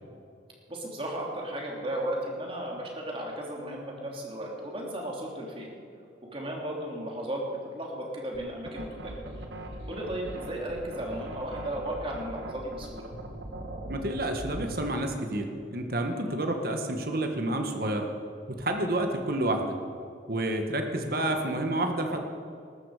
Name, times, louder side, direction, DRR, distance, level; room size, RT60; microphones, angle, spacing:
voice 1, 0.7-5.7 6.3-9.2 9.9-13.1 16.2-16.4, right 1 dB, 30° right, -1 dB, 3.3 m, -35 dB
sound 1, 8.3-15.0, right 1 dB, 80° right, 1.7 m, -40 dB
voice 2, 13.9-18.1 18.5-19.8 20.3-22.2, right 1 dB, 55° right, 4 dB, 1.6 m, -29 dB
19.5 x 14.0 x 5.1 m, 2.4 s
head